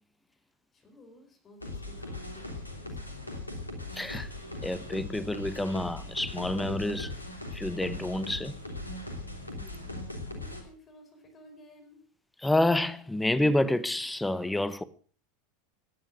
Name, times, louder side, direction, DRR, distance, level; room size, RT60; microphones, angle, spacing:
voice 1, 0.7-3.5 9.5-12.0, left 1 dB, 30° left, 4.9 m, -54 dB
sound 1, 1.6-10.6, left 2 dB, 85° left, 3.1 m, -39 dB
voice 2, 3.9-4.3 4.6-7.1 7.5-8.6 12.4-14.8, left 1 dB, 5° left, 1.0 m, -28 dB
17.0 x 10.5 x 6.2 m
figure-of-eight pair, 80°, 0 cm